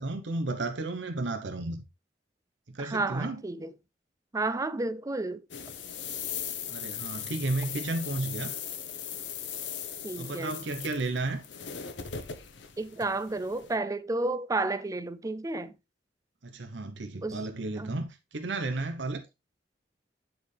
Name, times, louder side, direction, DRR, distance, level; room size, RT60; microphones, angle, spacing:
voice 1, 0.0-1.8 2.7-3.4 6.7-8.6 10.2-11.4 16.4-19.2, right 2 dB, 80° right, 0.9 m, -33 dB
voice 2, 2.8-3.7 4.3-5.4 10.0-10.6 12.8-15.8 17.2-17.4 17.8-17.9, right 2 dB, 20° right, 0.4 m, -31 dB
sound 1, 5.5-13.8, left 8 dB, 85° left, 0.9 m, -39 dB
9.3 x 4.4 x 3.3 m
head